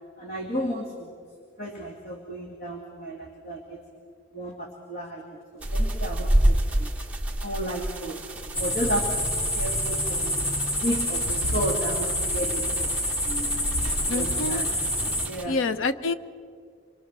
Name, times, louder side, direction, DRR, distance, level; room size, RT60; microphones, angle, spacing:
voice 1, 0.2-1.1 1.6-3.8 4.3-6.9 7.4-8.2 8.6-9.3 9.5-10.4 10.8-12.9 14.1-14.7 15.2-15.6, equal, 50° left, 0 dB, 2.3 m, -33 dB
sound 1, 5.6-15.4, right 1 dB, 5° right, 1.2 m, -30 dB
sound 2, 8.5-15.3, left 1 dB, 35° left, 3.4 m, -27 dB
voice 2, 14.1-14.6 15.5-16.1, left 3 dB, 75° left, 13 dB, 0.8 m, -27 dB
27.0 x 22.0 x 6.1 m, 2.1 s
head